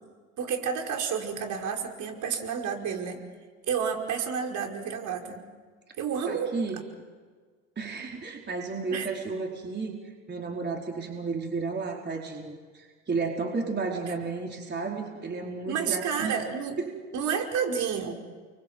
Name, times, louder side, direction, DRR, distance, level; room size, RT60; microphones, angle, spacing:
voice 1, 0.4-3.2 3.7-5.4 6.0-6.5 8.9-9.1 15.7-16.8 17.1-18.1, right 7 dB, 50° right, 2 dB, 5.3 m, -30 dB
voice 2, 6.3-6.8 7.8-10.0 10.3-16.4 16.8-17.0, right 4 dB, 25° right, 0 dB, 4.6 m, -33 dB
30.0 x 24.5 x 7.7 m, 1.5 s
hypercardioid pair, 75°, 38 cm